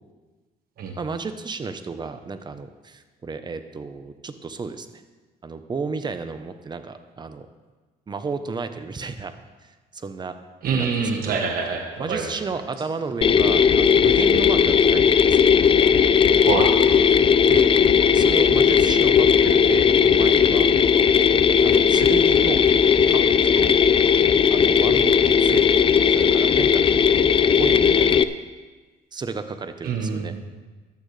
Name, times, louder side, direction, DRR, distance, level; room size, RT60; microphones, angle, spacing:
voice 1, 1.0-4.9 5.4-7.5 8.1-9.3 9.6-10.3 10.7-10.9 11.2-11.4 12.0-15.5 17.1-17.2 17.5-17.7 18.1-20.7 21.6-22.6 23.1-23.2 23.5-23.7 24.5-25.7 26.1-28.2 29.1-30.3, right 4 dB, 25° right, 9 dB, 0.9 m, -32 dB
voice 2, 10.6-12.3 16.4-16.7 29.8-30.5, right 5 dB, 60° right, 2 dB, 1.3 m, -25 dB
Mechanisms, 13.2-28.2, left 7 dB, 30° left, 0.4 m, -17 dB
15.0 x 11.5 x 3.3 m, 1.3 s
cardioid pair, 110°, 17 cm